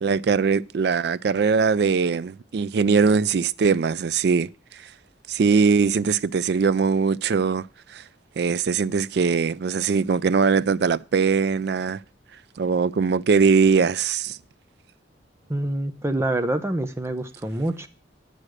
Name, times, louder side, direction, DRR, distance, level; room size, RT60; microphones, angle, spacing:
voice 1, 0.0-4.5 5.3-7.7 7.9-8.0 8.4-12.0 12.6-14.4, right 5 dB, 60° right, 0.4 m, -21 dB
voice 2, 15.5-17.9, right 1 dB, 15° right, 0.8 m, -26 dB
8.6 x 6.7 x 6.3 m
head